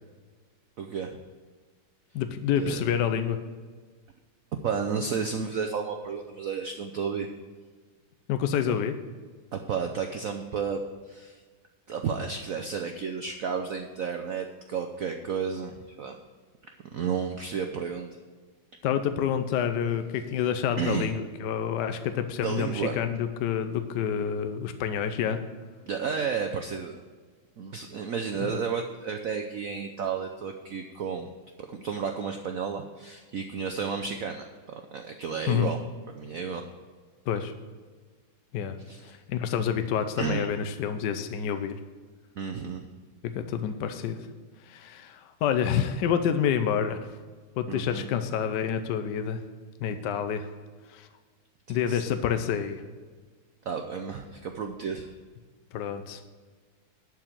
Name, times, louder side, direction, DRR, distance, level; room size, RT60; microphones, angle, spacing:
voice 1, 0.8-1.2 2.6-2.8 4.6-7.3 8.7-8.8 9.5-11.4 11.9-16.2 16.9-18.1 20.8-21.1 22.4-22.9 25.9-27.0 27.6-31.3 31.6-35.8 36.1-36.6 38.8-39.2 40.2-40.5 42.4-42.9 47.7-48.1 51.7-52.0 53.6-55.1, right 6 dB, 80° right, 5 dB, 0.7 m, -32 dB
voice 2, 2.1-3.4 8.3-8.9 18.8-25.4 28.4-28.6 35.5-35.7 37.3-37.5 38.5-38.8 39.0-41.7 43.2-44.2 44.6-47.1 47.6-49.4 49.8-50.5 50.9-51.1 51.7-52.8 55.7-56.2, left 8 dB, 65° left, 8 dB, 1.1 m, -28 dB
11.5 x 4.8 x 7.4 m, 1.5 s
omnidirectional pair, 2.3 m